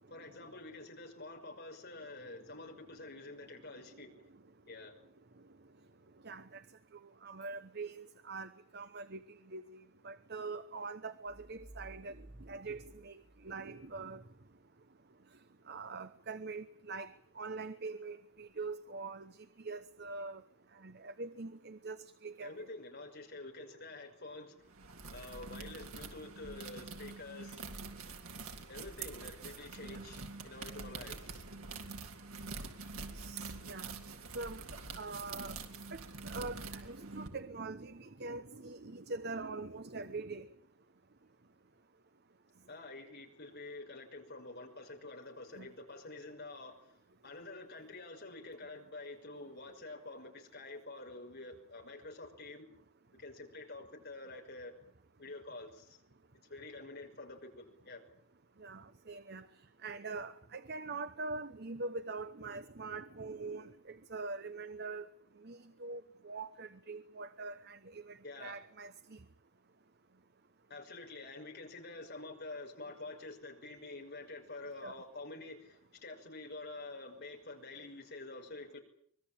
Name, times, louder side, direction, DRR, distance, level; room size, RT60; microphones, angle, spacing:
voice 1, 0.1-4.1 4.7-4.9 22.4-24.7 25.1-27.7 28.7-31.5 42.7-46.8 47.2-52.6 53.2-54.7 55.2-56.0 56.5-58.0 68.2-68.6 70.7-78.8, left 2 dB, 50° left, 5.6 m, -48 dB
voice 2, 6.2-6.6 7.2-9.2 9.5-12.2 12.5-14.2 15.7-19.3 19.6-20.4 20.8-22.0 22.2-22.7 29.9-30.0 33.1-33.9 34.3-34.6 34.9-35.5 35.9-40.4 45.6-45.7 58.6-59.5 59.8-65.1 65.4-69.2 74.8-74.9, right 3 dB, 50° right, 1.0 m, -43 dB
sound 1, 11.3-14.1, right 1 dB, ahead, 1.6 m, -55 dB
sound 2, 24.7-37.3, right 4 dB, 80° right, 3.4 m, -46 dB
24.5 x 21.0 x 8.9 m
head